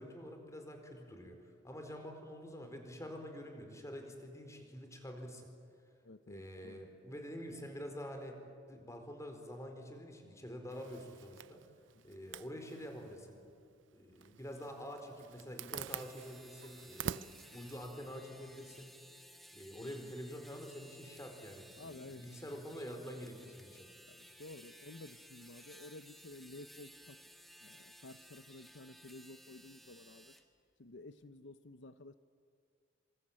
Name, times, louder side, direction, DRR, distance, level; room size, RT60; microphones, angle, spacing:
voice 1, 0.0-5.5 6.3-8.4 8.7-11.6 12.0-13.4 13.9-18.9 19.5-23.9, equal, 15° left, 4 dB, 4.5 m, -47 dB
voice 2, 6.0-6.9 11.9-12.0 19.8-20.1 21.8-22.4 24.1-27.2 27.6-30.4 30.8-32.1, left 2 dB, 75° left, 12 dB, 0.8 m, -53 dB
Zipper (clothing), 10.7-18.8, right 8 dB, 90° right, 0.6 m, -48 dB
sound 1, 15.9-30.4, equal, ahead, 2.0 m, -58 dB
26.5 x 25.5 x 8.9 m, 2.4 s
head